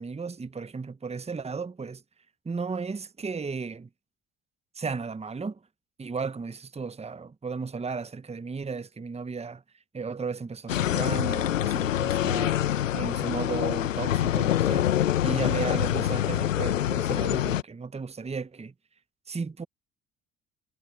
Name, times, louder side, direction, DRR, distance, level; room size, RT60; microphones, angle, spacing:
voice 1, 0.0-2.0 2.4-3.9 4.7-5.6 6.0-9.6 9.9-14.9 15.2-18.7 19.3-19.7, right 5 dB, 15° right, 1.1 m, -34 dB
sound 1, 10.7-17.6, left 11 dB, 85° left, 1.1 m, -25 dB
hypercardioid pair, 55°, 38 cm